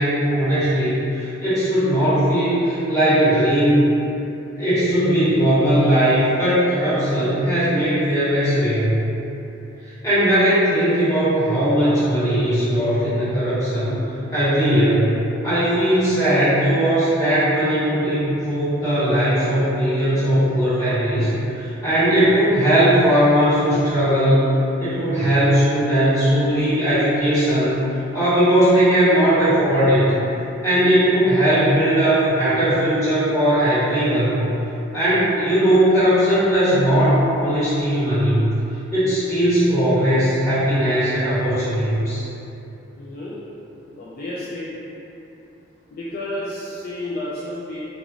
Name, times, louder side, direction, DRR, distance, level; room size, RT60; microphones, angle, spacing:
voice 1, 0.0-3.9 4.6-9.0 10.0-14.0 14.3-15.1 15.4-24.5 24.8-27.7 28.1-30.2 30.6-34.4 34.9-38.5 38.9-42.2, right 1 dB, 15° left, -16 dB, 1.4 m, -18 dB
voice 2, 43.0-43.4 43.9-44.7 45.9-47.8, left 1 dB, 45° left, -8 dB, 0.3 m, -31 dB
3.0 x 2.5 x 2.4 m, 2.9 s
head